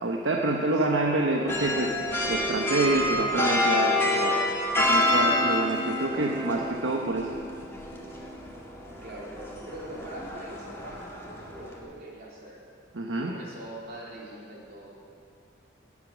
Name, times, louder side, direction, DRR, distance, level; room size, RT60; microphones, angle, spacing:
voice 1, 0.0-1.9 2.3-4.4 4.8-7.3 12.9-13.3, right 2 dB, 75° right, 0 dB, 1.0 m, -27 dB
voice 2, 0.6-1.1 9.0-12.6 13.2-15.1, right 1 dB, 50° right, -4 dB, 3.5 m, -43 dB
sound 1, 1.5-11.8, left 1 dB, 15° left, 1.9 m, -28 dB
21.5 x 8.4 x 6.3 m, 2.3 s
head